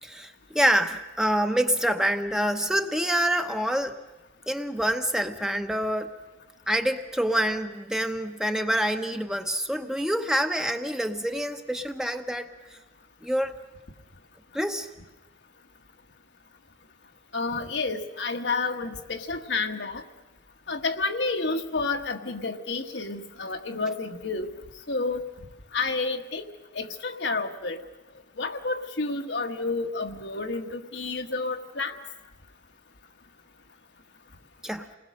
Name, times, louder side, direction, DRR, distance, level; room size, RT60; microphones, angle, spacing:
voice 1, 0.0-4.0 4.5-6.1 6.7-12.5 13.2-13.6 14.5-14.9 34.6-34.9, equal, 5° right, 6 dB, 0.9 m, -26 dB
voice 2, 17.3-20.0 20.7-24.5 24.9-25.3 25.7-26.4 26.7-27.8 28.4-31.9, left 3 dB, 75° left, 4 dB, 1.4 m, -30 dB
28.5 x 20.5 x 6.4 m, 1.1 s
head